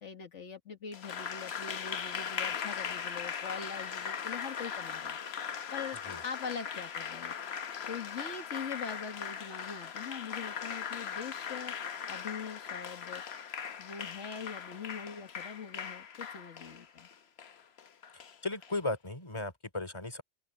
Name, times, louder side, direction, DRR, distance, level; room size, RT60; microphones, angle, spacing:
voice 1, 0.0-5.2 5.7-7.3 7.9-11.8 12.1-13.2 13.8-17.1, left 6 dB, 85° left, 2.0 m, -42 dB
Applause, 0.9-18.7, left 7 dB, 65° left, 1.2 m, -39 dB
voice 2, 18.1-20.2, left 2 dB, 25° left, 3.0 m, -36 dB
open air
omnidirectional pair, 1.2 m